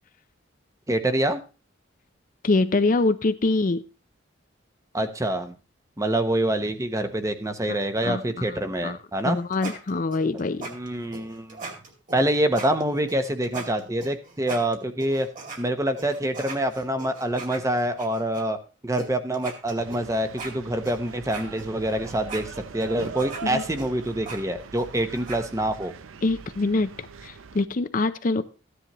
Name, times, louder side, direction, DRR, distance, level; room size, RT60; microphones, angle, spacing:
voice 1, 0.9-1.4 4.9-5.5 6.0-9.4 10.6-11.6 12.1-15.3 15.6-18.6 18.8-25.9, right 1 dB, 15° right, 8 dB, 0.8 m, -26 dB
voice 2, 2.4-3.8 8.0-9.0 9.2-10.7 23.4-23.6 26.2-28.4, left 3 dB, 40° left, 11 dB, 0.5 m, -25 dB
sound 1, 9.2-15.6 16.0-18.4 19.0-19.1 19.3-25.4, right 3 dB, 40° right, 2.4 m, -39 dB
sound 2, 19.8-27.7, right 5 dB, 90° right, 0.6 m, -41 dB
14.5 x 10.0 x 3.0 m, 0.33 s
head